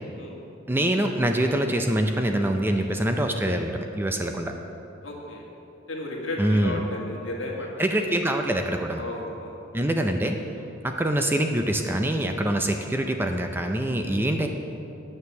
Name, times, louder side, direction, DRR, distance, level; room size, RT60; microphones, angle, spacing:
voice 1, 0.7-4.5 6.4-6.8 7.8-9.0 9.7-10.4 10.8-14.5, right 1 dB, 10° right, 4 dB, 0.4 m, -24 dB
voice 2, 5.0-5.5 5.9-7.8 9.0-9.6 10.6-10.7 14.1-14.3, left 2 dB, 70° left, -2 dB, 1.8 m, -34 dB
9.4 x 6.7 x 7.0 m, 2.9 s
head